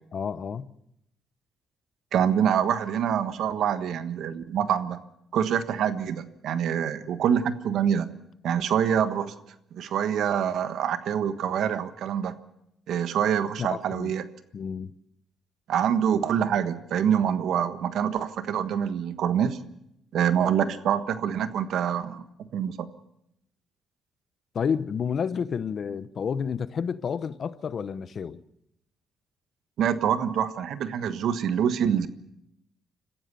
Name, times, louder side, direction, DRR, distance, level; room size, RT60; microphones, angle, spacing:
voice 1, 0.1-0.7 13.6-14.1 14.5-14.9 24.5-28.4, left 6 dB, 50° left, 0.9 m, -30 dB
voice 2, 2.1-5.0 5.3-8.1 8.4-9.3 9.7-12.4 12.9-14.3 15.7-19.6 20.1-22.2 22.5-22.9 29.8-32.1, right 8 dB, 75° right, 1.4 m, -25 dB
26.5 x 15.0 x 6.9 m
cardioid pair, 90°, 0 cm